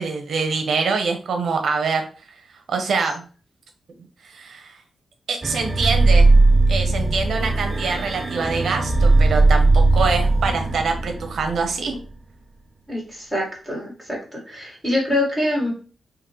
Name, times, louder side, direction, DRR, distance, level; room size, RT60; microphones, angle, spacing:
voice 1, 0.0-2.0 2.7-3.2 4.2-4.7 5.3-6.3 6.7-12.0, right 4 dB, 70° right, 4 dB, 0.6 m, -24 dB
sound 1, 5.4-12.1, right 2 dB, 25° right, 0.4 m, -18 dB
voice 2, 12.9-15.7, left 1 dB, 5° left, -3 dB, 1.5 m, -25 dB
3.8 x 2.8 x 3.0 m, 0.37 s
wide cardioid pair, 155°, 0 cm